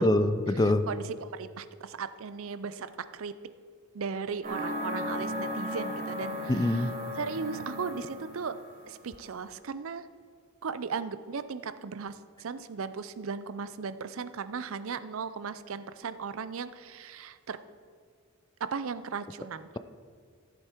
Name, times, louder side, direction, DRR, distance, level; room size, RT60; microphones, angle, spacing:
voice 1, 0.0-0.9 6.5-6.9, left 1 dB, 20° left, 0.4 m, -24 dB
voice 2, 0.9-3.3 3.9-8.6 8.9-10.1 10.6-17.6 18.6-19.8, right 5 dB, 65° right, 0.5 m, -37 dB
sound 1, 4.4-8.8, left 1 dB, 40° right, 2.8 m, -36 dB
14.0 x 8.0 x 4.5 m
head